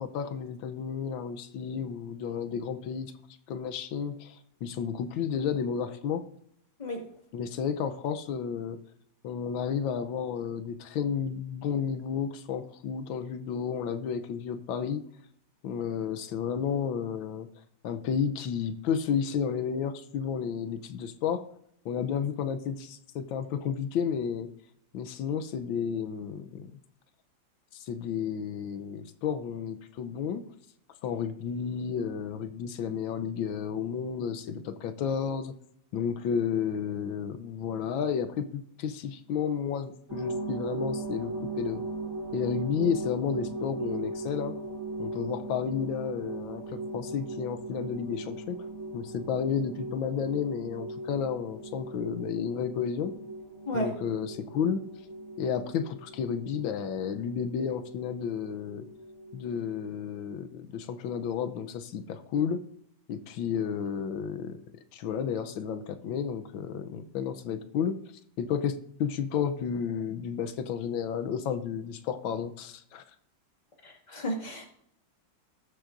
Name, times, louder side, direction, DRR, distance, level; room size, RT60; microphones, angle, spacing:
voice 1, 0.0-3.1 3.5-6.2 7.3-8.8 9.2-15.0 15.6-17.5 17.8-21.4 21.8-24.5 24.9-26.7 27.7-30.4 31.0-35.5 35.9-41.8 42.3-44.5 45.0-48.6 48.9-53.1 53.7-54.8 55.4-58.9 59.3-62.6 63.1-64.6 64.9-67.9 68.4-73.0, left 7 dB, 90° left, 10 dB, 1.5 m, -32 dB
sound 1, 40.1-59.9, right 2 dB, 10° right, 2.3 m, -39 dB
voice 2, 73.8-74.7, equal, 20° left, 0 dB, 2.1 m, -32 dB
19.0 x 7.6 x 2.6 m, 0.71 s
omnidirectional pair, 2.1 m